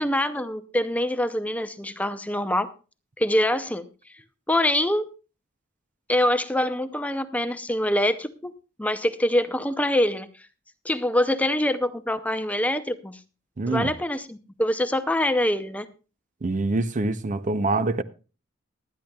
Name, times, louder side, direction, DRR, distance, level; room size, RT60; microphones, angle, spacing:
voice 1, 0.0-2.7 3.2-3.9 4.5-5.1 6.1-8.5 8.8-10.3 10.8-13.2 13.7-15.9, left 1 dB, 5° left, 0.6 m, -24 dB
voice 2, 13.6-13.9 16.4-18.0, right 2 dB, 40° right, 0.6 m, -25 dB
19.0 x 12.0 x 2.3 m
head